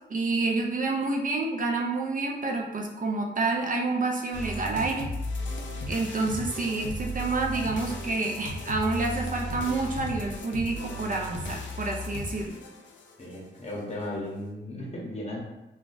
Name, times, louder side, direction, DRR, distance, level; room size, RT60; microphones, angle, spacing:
voice 1, 0.1-5.1 5.9-12.6, right 3 dB, 45° right, 0 dB, 0.4 m, -28 dB
sound 1, 4.3-13.4, equal, 85° left, 0.5 m, -36 dB
voice 2, 13.2-15.4, left 1 dB, 35° left, -4 dB, 0.9 m, -36 dB
3.6 x 2.3 x 2.5 m, 0.97 s
wide cardioid pair, 90°, 19 cm